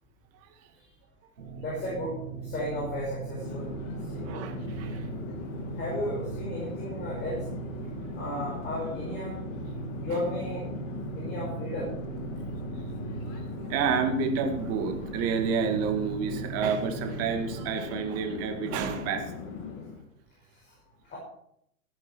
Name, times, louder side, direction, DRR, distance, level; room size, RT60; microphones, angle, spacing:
sound 1, 1.4-17.8, right 5 dB, 80° right, 2.6 m, -39 dB
voice 1, 1.6-2.1 2.4-3.7 4.1-4.4 5.8-7.5 8.1-9.4 10.0-10.7 11.1-11.9 21.0-21.2, left 1 dB, 25° left, -4 dB, 5.8 m, -34 dB
Conversation / Chatter / Fixed-wing aircraft airplane, 3.4-20.0, left 5 dB, 40° left, 2.6 m, -40 dB
voice 2, 4.3-5.0 10.1-10.2 13.6-19.3, right 6 dB, 35° right, 6 dB, 2.0 m, -29 dB
15.0 x 10.5 x 4.6 m, 0.73 s
hypercardioid pair, 110°, 43 cm